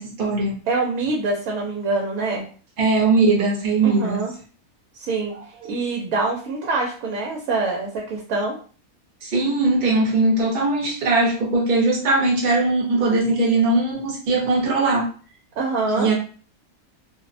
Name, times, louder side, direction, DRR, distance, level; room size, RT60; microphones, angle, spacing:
voice 1, 0.0-0.6 2.8-4.2 5.6-5.7 9.2-15.0 16.0-16.1, right 3 dB, 45° right, -2 dB, 0.8 m, -20 dB
voice 2, 0.7-2.4 3.8-4.3 4.9-5.3 5.7-8.6 15.6-16.1, right 3 dB, 75° right, -1 dB, 1.0 m, -25 dB
2.6 x 2.0 x 2.5 m, 0.40 s
omnidirectional pair, 1.5 m